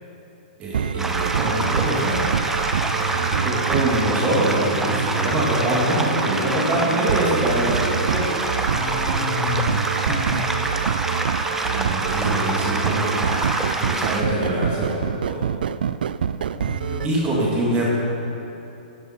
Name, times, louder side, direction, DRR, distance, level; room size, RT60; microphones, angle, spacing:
voice 1, 0.6-2.2 3.0-8.3 11.7-15.4 17.0-17.9, right 1 dB, 25° right, -5 dB, 2.6 m, -24 dB
sound 1, 0.7-17.1, right 8 dB, 80° right, 0.3 m, -26 dB
sound 2, 1.0-14.2, right 2 dB, 5° right, 0.6 m, -26 dB
voice 2, 8.7-10.6 16.5-17.3, left 7 dB, 35° left, 4 dB, 1.2 m, -31 dB
13.5 x 7.5 x 4.5 m, 2.8 s
hypercardioid pair, 130°, 5 cm